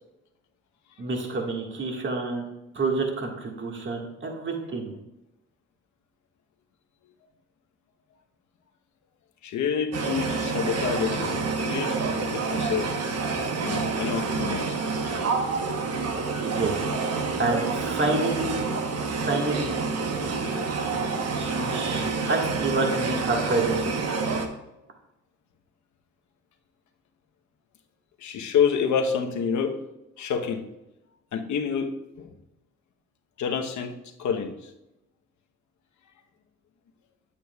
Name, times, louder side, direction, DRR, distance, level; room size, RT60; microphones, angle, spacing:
voice 1, 1.0-2.4 2.7-4.9 16.5-16.7 17.4-18.7 19.2-19.8 21.4-23.9, right 3 dB, 40° right, 1 dB, 1.7 m, -28 dB
voice 2, 9.4-12.9 13.6-14.8 28.2-29.7 30.2-30.6 31.3-31.9 32.2-32.3 33.4-33.9 34.2-34.5, left 7 dB, 70° left, 5 dB, 1.0 m, -28 dB
sound 1, 9.9-24.5, right 4 dB, 55° right, 1.1 m, -28 dB
8.9 x 8.4 x 2.3 m, 0.92 s
cardioid pair, 90°, 30 cm